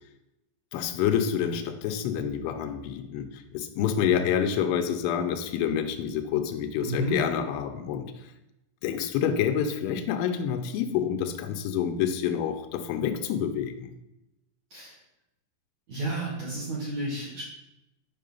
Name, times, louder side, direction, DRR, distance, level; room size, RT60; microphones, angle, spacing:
voice 1, 0.7-8.1 8.8-13.9, left 8 dB, 80° left, 7 dB, 3.1 m, -28 dB
voice 2, 6.8-7.2 14.7-15.0 15.9-17.4, right 1 dB, 55° right, -6 dB, 2.0 m, -31 dB
7.7 x 5.6 x 5.4 m, 0.90 s
omnidirectional pair, 5.7 m